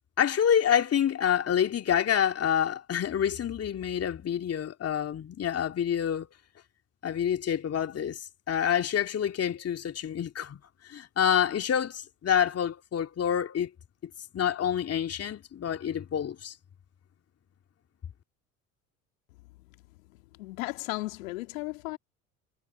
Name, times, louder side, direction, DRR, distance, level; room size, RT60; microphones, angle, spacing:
voice 1, 0.2-6.3 7.0-10.6 10.8-13.7 14.3-16.5, left 9 dB, 35° left, 2.6 m, -27 dB
voice 2, 20.4-22.0, left 22 dB, 70° left, 2.4 m, -35 dB
hypercardioid pair, 70°, 41 cm